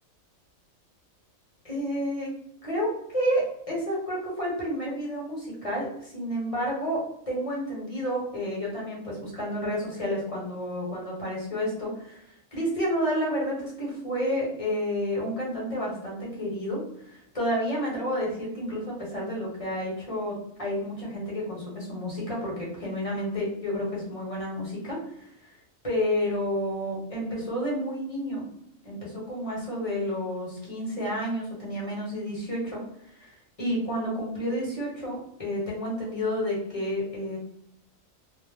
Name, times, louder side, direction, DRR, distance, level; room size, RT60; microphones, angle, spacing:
voice 1, 1.6-2.3 2.6-12.2 12.5-25.2 25.8-28.5 28.8-37.4, equal, 30° left, -5 dB, 0.9 m, -30 dB
2.4 x 2.0 x 3.3 m, 0.72 s
omnidirectional pair, 1.4 m